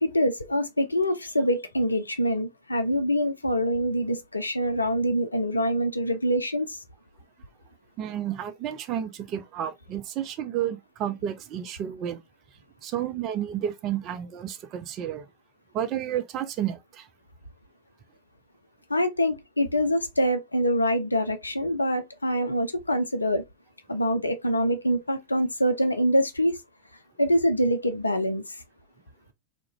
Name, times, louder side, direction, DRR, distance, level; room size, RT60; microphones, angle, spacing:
voice 1, 0.0-6.8 18.9-23.4 23.9-26.6 27.2-28.6, equal, 80° left, 0.4 m, -25 dB
voice 2, 8.0-12.2 12.8-15.2 15.7-17.1, right 10 dB, 35° right, 0.4 m, -31 dB
2.4 x 2.1 x 2.8 m
figure-of-eight pair, 90°, 0 cm